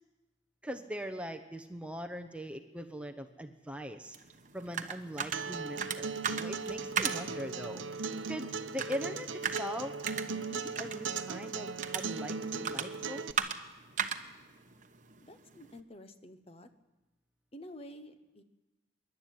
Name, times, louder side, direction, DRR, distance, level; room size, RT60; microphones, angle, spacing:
voice 1, 0.6-4.2 4.5-7.8 8.3-9.9 10.3-13.6, equal, 5° right, 6 dB, 0.8 m, -41 dB
sound 1, 4.1-15.8, right 7 dB, 40° right, 1.0 m, -39 dB
Acoustic guitar, 5.3-13.3, right 5 dB, 80° right, 0.8 m, -38 dB
voice 2, 15.2-16.7 17.5-18.4, left 1 dB, 30° left, 9 dB, 1.0 m, -50 dB
25.0 x 11.5 x 9.4 m, 1.1 s
head